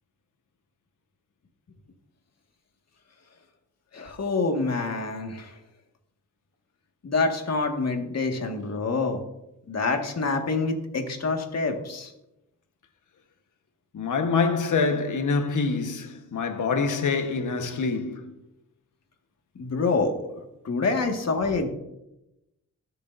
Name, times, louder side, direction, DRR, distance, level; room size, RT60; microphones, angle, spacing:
voice 1, 3.9-5.5 7.0-9.2 9.7-12.1 19.6-20.3 20.6-21.7, left 3 dB, 55° left, 1.9 m, -26 dB
voice 2, 13.9-18.3, left 4 dB, 70° left, 1.3 m, -25 dB
19.5 x 6.8 x 2.7 m
cardioid pair, 65°, 32 cm